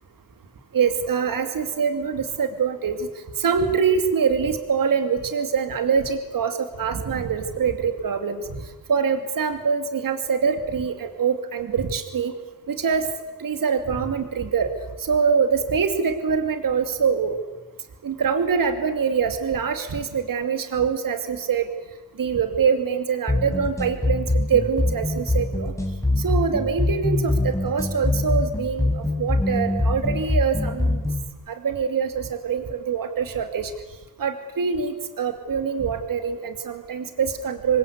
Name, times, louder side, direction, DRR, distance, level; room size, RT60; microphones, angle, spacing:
voice 1, 0.7-3.1 3.4-8.4 8.9-12.3 12.7-13.1 13.4-14.7 15.0-17.4 18.0-21.7 22.2-25.7 26.2-31.0 31.5-33.7 34.2-37.8, right 6 dB, 65° right, 7 dB, 2.7 m, -24 dB
sound 1, 23.3-31.3, left 2 dB, 10° left, 4.8 m, -24 dB
28.0 x 24.0 x 8.4 m, 1.1 s
cardioid pair, 100°, 36 cm